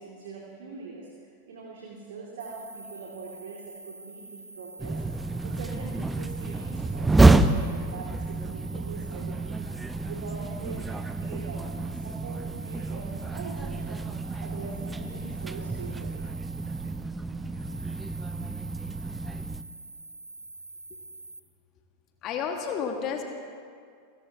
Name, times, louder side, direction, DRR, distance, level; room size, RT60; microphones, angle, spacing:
voice 1, 0.0-5.0 5.4-16.3, right 4 dB, 60° right, -2 dB, 2.2 m, -43 dB
sound 1, 2.4-21.4, right 2 dB, 85° right, 0.7 m, -46 dB
sound 2, 4.8-19.6, right 2 dB, 10° right, 0.6 m, -28 dB
voice 2, 22.2-23.2, left 7 dB, 40° left, 3 dB, 1.6 m, -30 dB
28.5 x 17.5 x 2.8 m, 2.2 s
figure-of-eight pair, 90°, 0 cm